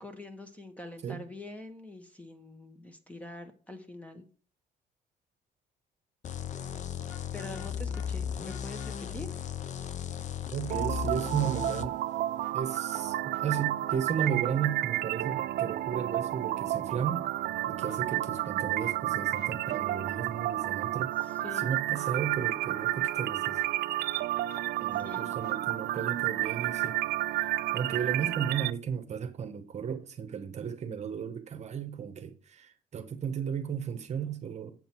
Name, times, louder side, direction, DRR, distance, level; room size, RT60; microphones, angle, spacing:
voice 1, 0.0-4.2 7.3-9.3 21.4-21.7 25.0-25.3, left 2 dB, 10° left, 1.5 m, -44 dB
sound 1, 6.2-11.9, left 8 dB, 45° left, 0.7 m, -36 dB
Vehicle horn car horn honking, 7.0-8.1 8.5-9.0 12.4-13.1 13.3-13.4 13.9-14.3 17.7-18.5 18.8-19.0 19.3-19.8 23.6-24.6 25.1-25.6, left 6 dB, 80° left, 1.9 m, -53 dB
voice 2, 10.5-12.0 12.5-17.3 17.7-23.6 24.8-27.0 27.4-34.8, right 7 dB, 40° right, 1.1 m, -34 dB
sound 2, 10.7-28.7, right 15 dB, 65° right, 0.5 m, -31 dB
7.8 x 7.6 x 4.5 m
cardioid pair, 110°, 17 cm